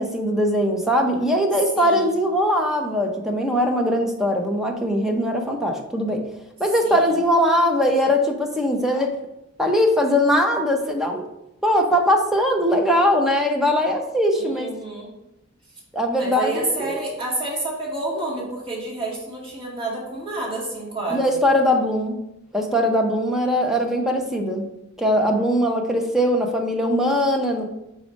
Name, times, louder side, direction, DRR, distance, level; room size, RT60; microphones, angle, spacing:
voice 1, 0.0-6.2 6.6-9.1 9.6-11.3 11.6-14.7 15.9-17.0 21.1-22.2 22.5-24.7 25.0-27.6, equal, ahead, 1 dB, 0.8 m, -21 dB
voice 2, 14.3-15.1 16.2-21.3, right 2 dB, 25° right, -5 dB, 2.1 m, -29 dB
4.9 x 4.1 x 5.2 m, 0.86 s
head